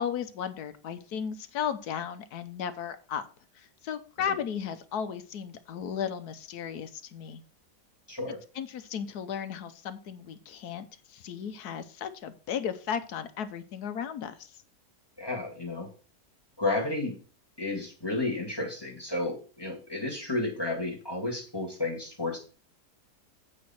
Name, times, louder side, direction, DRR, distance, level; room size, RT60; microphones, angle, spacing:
voice 1, 0.0-3.3 3.5-7.4 8.3-14.6, left 8 dB, 70° left, 11 dB, 1.3 m, -35 dB
voice 2, 8.1-8.4 15.2-15.9 16.6-17.2 17.6-22.4, left 2 dB, 15° left, 0 dB, 2.1 m, -32 dB
8.4 x 5.2 x 5.8 m, 0.37 s
omnidirectional pair, 1.8 m